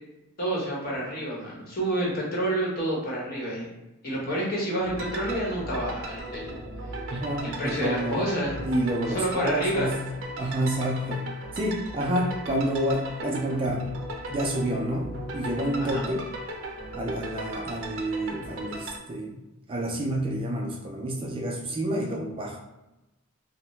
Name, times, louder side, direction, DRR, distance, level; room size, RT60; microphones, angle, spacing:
voice 1, 0.4-3.7 4.0-6.6 7.4-8.6 9.1-9.9 15.8-16.0, right 1 dB, 45° left, -4 dB, 0.9 m, -29 dB
sound 1, 4.8-19.0, right 1 dB, 70° right, 0.6 m, -37 dB
voice 2, 7.1-8.2 8.6-10.0 10.4-14.0 14.3-16.3 16.9-19.4 19.7-22.6, right 1 dB, 25° right, -1 dB, 0.3 m, -29 dB
2.7 x 2.0 x 3.0 m, 0.98 s
head